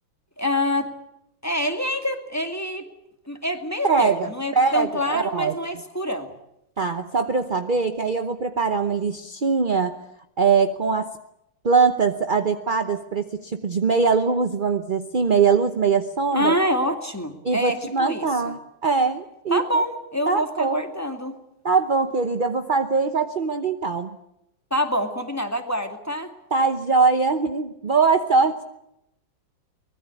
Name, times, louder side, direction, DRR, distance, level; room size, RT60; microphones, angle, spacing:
voice 1, 0.4-0.9 1.4-2.9 3.3-6.3 16.3-18.5 19.5-21.4 24.7-26.3, equal, 10° left, 6 dB, 2.1 m, -26 dB
voice 2, 3.8-5.5 6.8-10.0 10.4-11.1 11.6-16.5 17.4-19.8 20.3-20.8 21.6-24.1 26.5-28.6, right 5 dB, 45° right, 7 dB, 0.6 m, -22 dB
24.0 x 20.5 x 8.5 m, 0.83 s
omnidirectional pair, 2.3 m